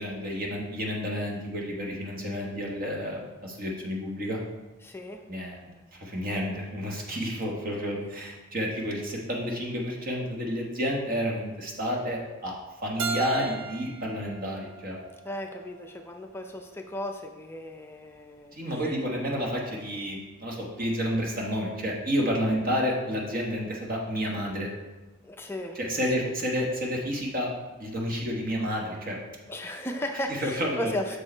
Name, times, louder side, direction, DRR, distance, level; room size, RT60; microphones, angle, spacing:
voice 1, 0.0-4.4 5.3-15.0 18.5-24.7 25.7-27.5 27.8-29.2 30.3-30.9, equal, 40° right, -1 dB, 1.2 m, -30 dB
voice 2, 4.8-5.2 15.2-19.0 25.2-25.8 26.2-26.3 29.5-31.2, left 1 dB, 10° left, 3 dB, 0.4 m, -36 dB
Keyboard (musical), 13.0-15.8, right 5 dB, 75° right, 0.5 m, -36 dB
6.6 x 4.6 x 4.4 m, 1.1 s
head